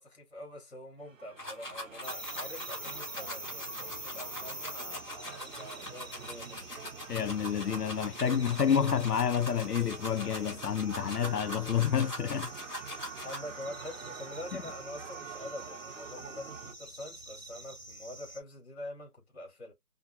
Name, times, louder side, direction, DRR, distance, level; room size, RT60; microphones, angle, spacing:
voice 1, 0.0-6.8 12.4-12.9 13.2-19.7, left 1 dB, 45° left, 3.0 m, -45 dB
sound 1, 1.0-16.7, right 6 dB, 55° right, 0.8 m, -47 dB
sound 2, 1.4-13.4, equal, 15° left, 1.9 m, -42 dB
sound 3, 2.0-18.4, right 1 dB, 15° right, 0.6 m, -47 dB
voice 2, 7.1-12.5, left 8 dB, 80° left, 0.7 m, -29 dB
5.1 x 2.4 x 2.6 m
figure-of-eight pair, 155°, 47 cm